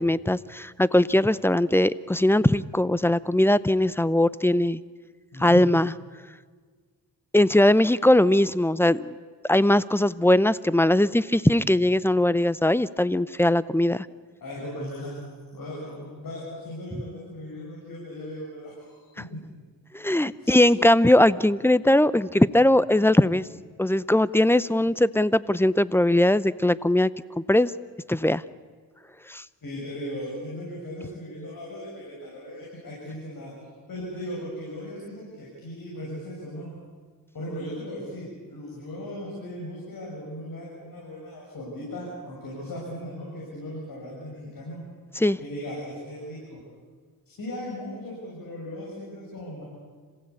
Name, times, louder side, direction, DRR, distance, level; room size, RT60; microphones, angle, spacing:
voice 1, 0.0-4.8 5.4-5.9 7.3-9.1 9.5-14.1 19.9-23.4 23.8-27.1 27.5-27.7 28.1-28.4 29.3-29.4 45.2-45.4, left 1 dB, 5° left, 18 dB, 0.6 m, -20 dB
voice 2, 5.3-5.7 14.4-15.1 15.5-19.4 20.4-20.6 29.6-33.5 33.9-36.7 37.3-44.8 45.4-46.6 47.3-49.6, equal, 60° left, -4 dB, 7.3 m, -37 dB
26.5 x 16.5 x 8.5 m, 1.6 s
cardioid pair, 80°, 37 cm